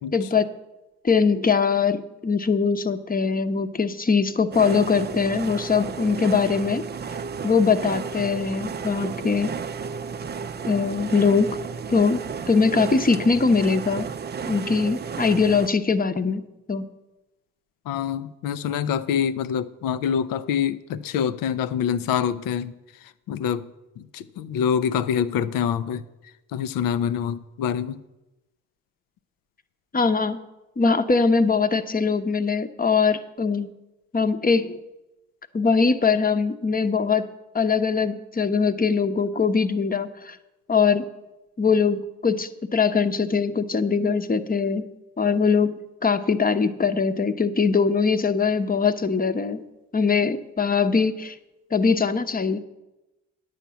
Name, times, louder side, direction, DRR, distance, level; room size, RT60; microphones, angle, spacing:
voice 1, 0.1-0.5 1.0-6.8 7.4-9.6 10.7-11.6 11.9-14.1 14.5-16.4 16.7-16.9 29.9-30.4 30.8-33.7 34.1-34.8 35.5-37.3 37.5-40.4 40.7-41.1 41.6-44.9 45.2-49.6 49.9-51.4 51.7-52.6, left 5 dB, 25° left, 9 dB, 0.9 m, -22 dB
sound 1, 4.5-15.7, right 6 dB, 30° right, 0.5 m, -33 dB
voice 2, 17.9-22.7 23.3-23.7 24.0-26.0 26.5-28.0, left 8 dB, 70° left, 15 dB, 0.6 m, -25 dB
10.0 x 6.4 x 6.9 m, 1.0 s
hypercardioid pair, 50°, 34 cm